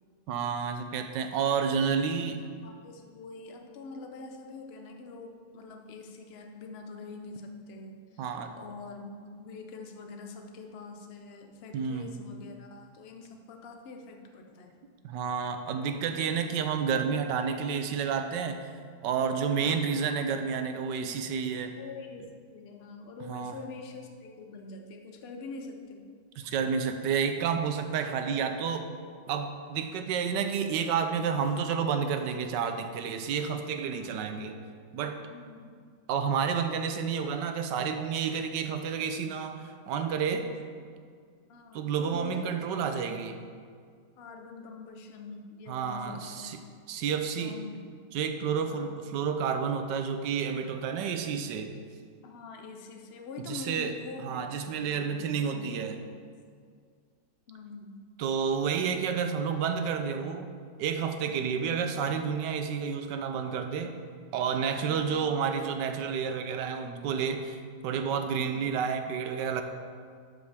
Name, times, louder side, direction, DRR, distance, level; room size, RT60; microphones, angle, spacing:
voice 1, 0.3-2.4 8.2-8.5 11.7-12.1 15.0-18.7 19.0-21.7 23.3-23.6 26.4-28.9 29.3-34.6 34.9-35.3 36.1-40.5 41.7-43.4 45.7-46.6 46.9-47.6 48.1-51.7 53.4-53.9 54.2-56.0 58.2-60.5 60.8-63.9 64.3-69.6, right 6 dB, 85° right, 7 dB, 1.3 m, -30 dB
voice 2, 1.6-8.3 8.6-14.7 19.4-19.8 21.8-26.0 33.9-34.3 35.3-35.7 40.5-40.6 41.4-42.6 44.2-46.5 47.2-47.9 48.7-48.9 52.2-55.9 57.5-58.0 61.6-61.8 64.9-65.2 68.3-68.6, left 4 dB, 50° left, 3 dB, 0.8 m, -45 dB
11.5 x 5.2 x 3.5 m, 2.1 s
omnidirectional pair, 1.8 m